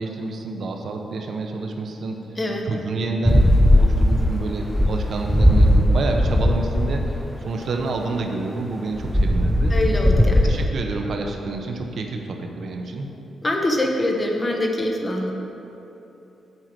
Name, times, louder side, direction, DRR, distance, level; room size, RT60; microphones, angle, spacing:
voice 1, 0.0-2.2 2.6-3.4 3.7-9.7 10.4-13.1, right 3 dB, 55° right, 3 dB, 0.9 m, -28 dB
sound 1, 3.2-7.1 9.0-10.6, left 1 dB, 5° left, 0.5 m, -18 dB
voice 2, 9.7-10.5 13.4-15.3, left 1 dB, 20° left, 1 dB, 1.1 m, -24 dB
8.0 x 5.7 x 7.5 m, 3.0 s
cardioid pair, 125°, 0 cm